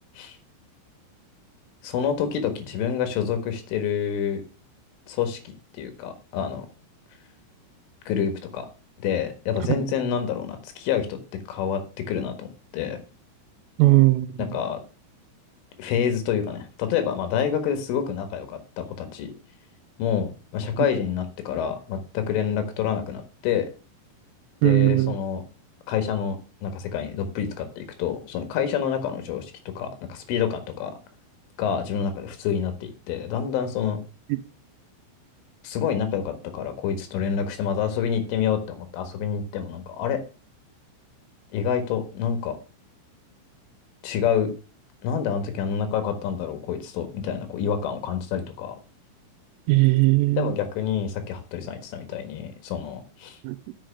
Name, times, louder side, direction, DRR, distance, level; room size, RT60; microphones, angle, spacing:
voice 1, 1.8-4.4 5.1-5.4 5.7-6.7 8.1-8.7 9.0-11.2 11.5-12.5 12.7-13.0 14.5-14.8 15.8-19.3 20.0-23.7 24.6-25.4 25.9-30.9 31.6-34.0 35.6-40.2 41.5-42.6 44.0-44.5 45.0-48.8 50.4-53.4, left 8 dB, 75° left, 4.0 m, -27 dB
voice 2, 13.8-14.6 20.8-20.9 24.6-25.1 34.3-34.4 49.7-50.6 53.4-53.7, right 20 dB, 85° right, 3.4 m, -19 dB
7.7 x 6.8 x 6.9 m
omnidirectional pair, 5.9 m